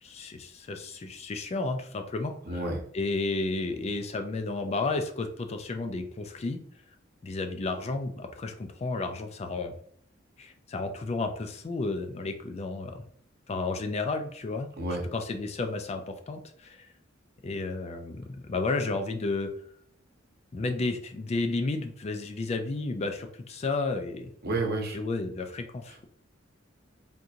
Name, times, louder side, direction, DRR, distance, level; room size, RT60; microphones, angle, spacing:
voice 1, 0.0-2.7 2.9-6.6 7.2-9.7 10.4-13.0 13.5-14.7 15.1-16.9 17.4-19.5 20.5-24.3 24.9-26.1, left 3 dB, 35° left, 6 dB, 0.3 m, -32 dB
voice 2, 2.5-2.8 14.8-15.0 24.4-25.0, right 2 dB, 55° right, 1 dB, 0.8 m, -30 dB
3.7 x 2.5 x 2.8 m, 0.63 s
head